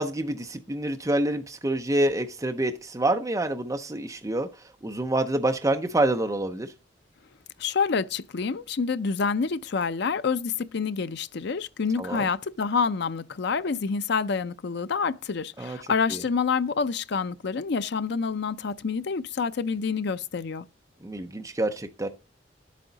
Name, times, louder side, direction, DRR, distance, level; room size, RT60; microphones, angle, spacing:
voice 1, 0.0-4.5 4.8-6.7 12.0-12.3 15.6-15.8 16.1-16.2 21.0-22.1, right 1 dB, 20° right, 0.6 m, -27 dB
voice 2, 7.6-20.6, left 5 dB, 65° left, 0.5 m, -27 dB
10.5 x 8.4 x 4.0 m
head